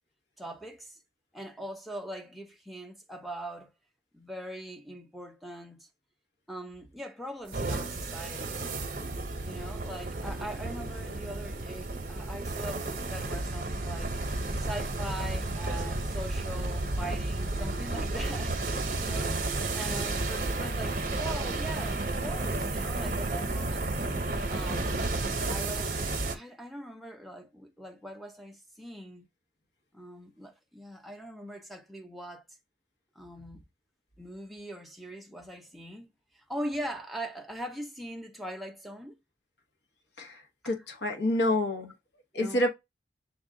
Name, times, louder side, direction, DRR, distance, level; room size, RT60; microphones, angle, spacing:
voice 1, 0.4-1.0 1.3-3.7 4.1-5.9 6.5-8.6 9.4-14.2 14.6-19.5 19.7-23.9 24.5-24.9 25.5-29.3 29.9-32.4 33.1-33.6 34.2-36.1 36.3-39.2 40.6-40.7 42.3-42.7, right 1 dB, ahead, 0.6 m, -41 dB
sound 1, 7.5-26.4, right 2 dB, 50° right, 0.8 m, -32 dB
voice 2, 40.2-41.9 42.3-42.7, left 1 dB, 75° left, 1.1 m, -28 dB
6.1 x 2.3 x 3.7 m
head